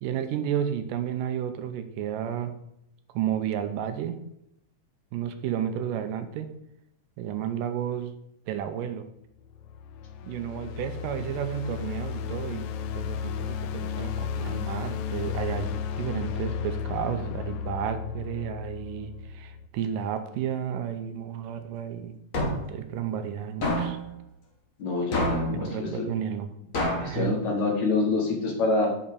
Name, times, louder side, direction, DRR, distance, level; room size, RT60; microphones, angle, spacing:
voice 1, 0.0-2.5 3.1-4.2 5.1-6.5 7.2-8.1 8.5-9.1 10.2-22.1 22.7-24.0 25.5-26.6 27.0-27.4, right 9 dB, 80° right, 8 dB, 2.3 m, -32 dB
sound 1, 9.4-19.7, left 7 dB, 85° left, 2.4 m, -34 dB
sound 2, 22.3-22.8 23.6-24.0 25.1-25.6 26.7-27.1, left 1 dB, 35° left, 1.5 m, -27 dB
voice 2, 24.8-26.1 27.0-28.9, left 3 dB, 60° left, -1 dB, 2.9 m, -26 dB
6.6 x 5.6 x 6.9 m, 0.79 s
omnidirectional pair, 3.9 m